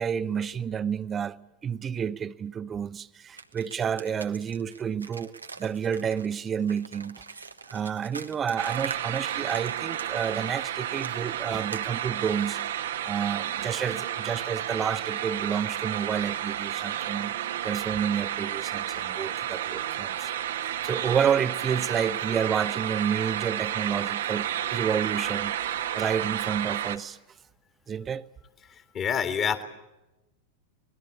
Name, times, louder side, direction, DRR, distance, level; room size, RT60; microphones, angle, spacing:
voice 1, 0.0-1.4 1.6-5.3 5.6-7.2 7.7-12.6 13.0-17.4 17.6-20.3 20.8-27.2 27.9-28.2, right 7 dB, 20° right, 0.8 m, -30 dB
sound 1, 3.3-10.5 11.0-12.7, right 4 dB, 80° right, 1.2 m, -43 dB
sound 2, 8.6-27.0, right 11 dB, 60° right, 1.3 m, -31 dB
voice 2, 28.7-29.6, left 7 dB, 30° left, 2.3 m, -28 dB
25.5 x 20.0 x 8.3 m
figure-of-eight pair, 90°, 0 cm